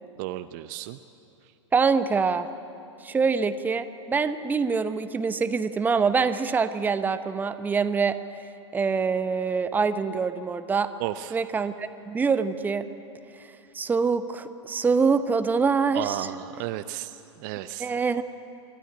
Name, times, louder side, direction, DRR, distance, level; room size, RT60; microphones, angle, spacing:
voice 1, 0.2-1.0 11.0-11.4 15.9-17.9, right 15 dB, 40° right, 11 dB, 0.6 m, -33 dB
voice 2, 1.7-2.5 3.0-8.2 8.7-10.9 11.3-12.9 13.7-16.2 17.8-18.2, right 5 dB, 10° right, 11 dB, 0.8 m, -25 dB
25.5 x 13.0 x 9.9 m, 2.7 s
figure-of-eight pair, 100°, 16 cm